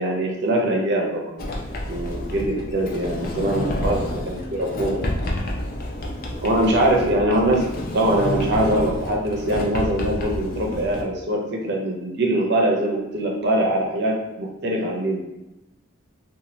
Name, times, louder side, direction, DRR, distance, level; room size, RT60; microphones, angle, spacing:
voice 1, 0.0-1.4 1.9-5.2 6.4-7.6 7.9-15.2, right 1 dB, 55° right, -1 dB, 0.5 m, -23 dB
Sliding door, 1.4-11.0, left 1 dB, 45° left, 0.4 m, -29 dB
2.6 x 2.3 x 3.0 m, 0.94 s
head